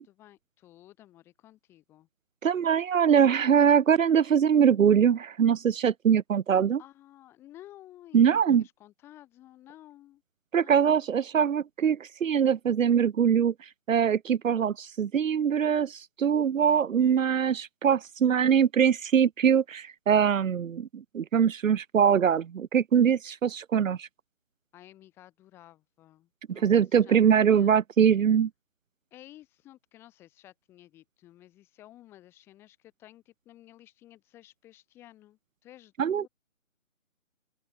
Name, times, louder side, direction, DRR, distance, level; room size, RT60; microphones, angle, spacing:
voice 1, 0.0-2.1 6.8-10.2 10.6-11.1 24.7-27.8 29.1-36.3, left 14 dB, 5° left, 2.7 m, -53 dB
voice 2, 2.4-6.8 8.1-8.6 10.5-13.5 13.9-24.1 26.6-28.5 36.0-36.2, right 8 dB, 80° right, 0.6 m, -23 dB
open air
figure-of-eight pair, 170°, 39 cm